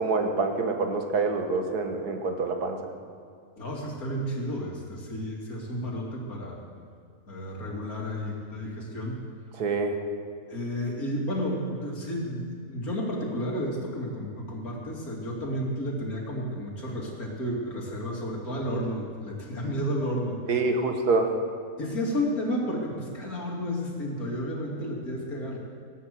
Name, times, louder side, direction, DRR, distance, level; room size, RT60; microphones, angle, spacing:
voice 1, 0.0-2.8 9.6-10.0 20.5-21.3, right 3 dB, 90° right, 4 dB, 2.0 m, -26 dB
voice 2, 3.6-6.6 7.3-9.2 10.5-20.4 21.8-25.6, equal, 70° left, -1 dB, 3.1 m, -32 dB
18.5 x 9.3 x 7.7 m, 2.2 s
omnidirectional pair, 1.6 m